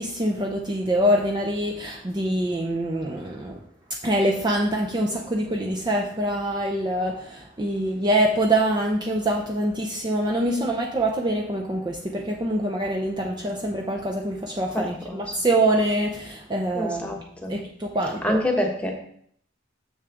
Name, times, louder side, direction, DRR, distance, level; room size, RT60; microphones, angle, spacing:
voice 1, 0.0-3.6 4.0-17.2 17.5-18.4, right 1 dB, 25° right, 0 dB, 0.6 m, -25 dB
voice 2, 14.7-15.2 16.7-17.5 18.2-18.9, left 1 dB, 5° left, 0 dB, 1.2 m, -27 dB
6.9 x 6.4 x 3.5 m, 0.64 s
head